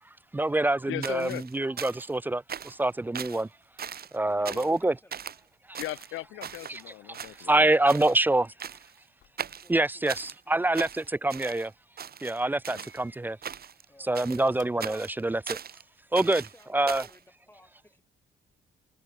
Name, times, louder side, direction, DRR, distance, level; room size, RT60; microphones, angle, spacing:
voice 1, 0.3-3.5 4.1-4.9 5.7-5.8 6.7-6.9 7.5-8.5 9.7-11.7 12.2-13.4 14.1-15.6 16.1-16.4 16.7-17.0, right 2 dB, 10° right, 0.3 m, -26 dB
voice 2, 0.9-1.4 4.5-4.7 5.8-7.7 12.7-12.8, left 17 dB, 90° left, 0.8 m, -38 dB
sound 1, 1.0-2.2 2.5-2.8 3.1-3.4 3.8-4.2 4.5-4.8 5.1-5.4 5.7-6.8 7.1-7.6 7.9-8.2 8.6-9.0 9.4-10.4 10.7-11.7 12.0-13.0 13.4-13.8 14.1-15.8 16.1-17.2, right 8 dB, 50° right, 2.1 m, -39 dB
sound 2, 3.7-17.3, left 11 dB, 70° left, 4.2 m, -66 dB
voice 3, 4.0-5.5 9.5-11.1 13.9-14.6 16.3-18.0, left 1 dB, 10° left, 6.8 m, -60 dB
cardioid pair, 90°, 20 cm